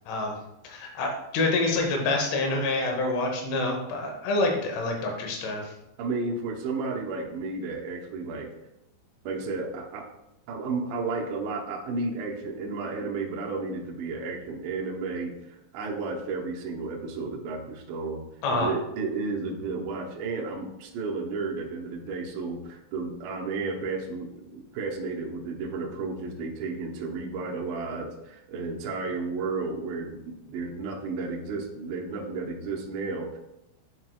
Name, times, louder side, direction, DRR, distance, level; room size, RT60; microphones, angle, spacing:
voice 1, 0.1-0.4 0.6-5.7 18.4-18.7, left 2 dB, 75° left, 1 dB, 3.4 m, -27 dB
voice 2, 6.0-8.5 9.2-10.1 10.5-18.2 18.5-33.4, right 3 dB, 75° right, -1 dB, 2.8 m, -32 dB
11.0 x 4.6 x 2.3 m, 0.88 s
omnidirectional pair, 5.9 m